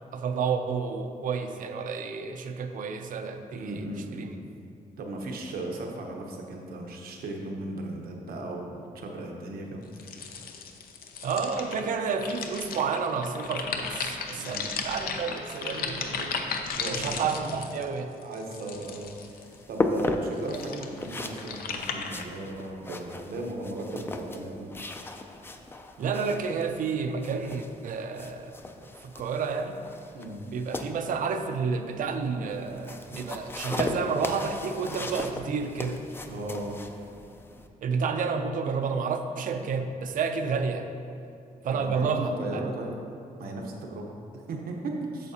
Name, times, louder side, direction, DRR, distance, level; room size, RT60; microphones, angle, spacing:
voice 1, 0.1-4.3 11.2-16.3 16.6-18.2 26.0-29.8 30.4-36.0 37.8-40.9 41.6-42.3, right 5 dB, 65° right, 6 dB, 0.5 m, -30 dB
voice 2, 3.5-4.3 5.0-10.3 14.3-14.7 16.8-17.4 18.2-24.7 30.1-30.4 36.3-36.8 41.7-43.0 43.4-45.3, right 2 dB, 90° right, 1 dB, 1.0 m, -36 dB
sound 1, 9.9-19.6 20.2-22.2, left 5 dB, 85° left, 0.6 m, -35 dB
sound 2, 18.8-37.7, left 2 dB, 15° left, 0.3 m, -37 dB
8.7 x 6.8 x 2.8 m, 2.6 s
wide cardioid pair, 160°, 15 cm